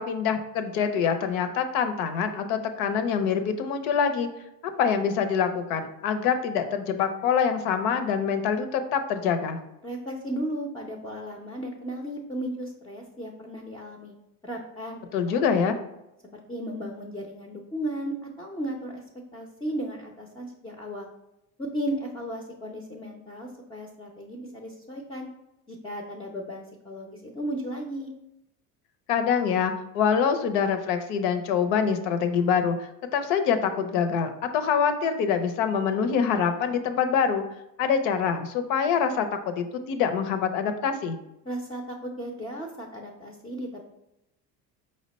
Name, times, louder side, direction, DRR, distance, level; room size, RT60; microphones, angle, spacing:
voice 1, 0.0-4.3 4.8-9.6 15.1-15.8 29.1-37.4 37.8-41.2, left 7 dB, 80° left, 9 dB, 0.6 m, -25 dB
voice 2, 9.8-14.1 14.4-15.8 16.3-19.0 19.3-21.1 21.6-25.3 25.7-28.1 41.4-43.9, right 1 dB, 10° left, 1 dB, 0.4 m, -35 dB
4.8 x 2.1 x 4.0 m, 0.87 s
supercardioid pair, 95°, 44 cm